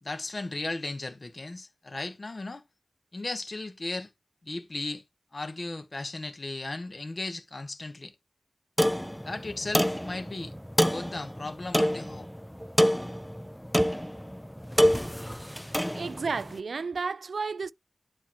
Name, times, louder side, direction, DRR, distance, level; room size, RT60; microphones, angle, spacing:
voice 1, 0.0-2.6 3.1-4.1 4.4-5.0 5.3-8.1 9.2-10.5 10.9-12.3, left 2 dB, 45° left, 1.0 m, -36 dB
sound 1, 8.8-16.5, equal, 5° left, 0.4 m, -27 dB
voice 2, 16.0-17.7, right 4 dB, 85° right, 0.3 m, -32 dB
11.0 x 4.4 x 2.9 m
wide cardioid pair, 95°, 0 cm